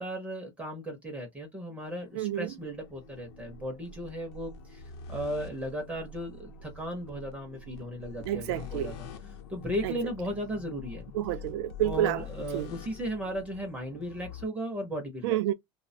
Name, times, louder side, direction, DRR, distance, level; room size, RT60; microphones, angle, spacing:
voice 1, 0.0-11.1 11.8-15.4, equal, 10° right, 0.5 m, -36 dB
sound 1, 1.8-14.5, left 5 dB, 70° left, 0.7 m, -46 dB
voice 2, 2.2-2.5 8.2-8.9 9.8-9.9 11.1-12.2 12.5-12.7 15.2-15.5, right 13 dB, 70° right, 0.4 m, -29 dB
2.9 x 2.0 x 2.5 m
cardioid pair, 180°, 14 cm